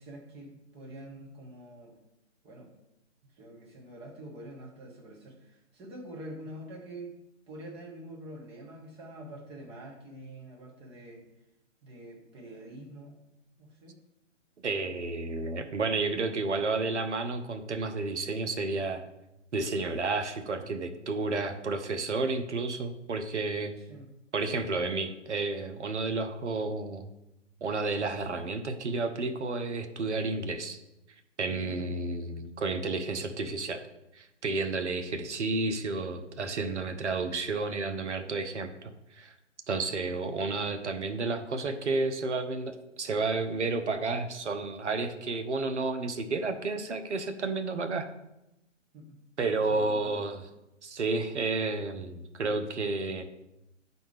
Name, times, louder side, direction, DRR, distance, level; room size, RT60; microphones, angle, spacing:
voice 1, 0.0-2.0 2.4-2.7 3.3-7.2 7.5-11.2 11.8-13.2 13.6-14.0 23.8-24.1 48.9-49.2 49.7-50.2, right 1 dB, 15° right, -1 dB, 1.2 m, -46 dB
voice 2, 14.6-19.0 19.5-23.7 24.3-27.1 27.6-30.8 31.4-33.8 34.1-39.3 39.7-48.1 49.4-50.4 50.8-53.2, right 3 dB, 65° right, 7 dB, 0.9 m, -31 dB
10.0 x 4.3 x 3.4 m, 0.90 s
figure-of-eight pair, 130°, 38 cm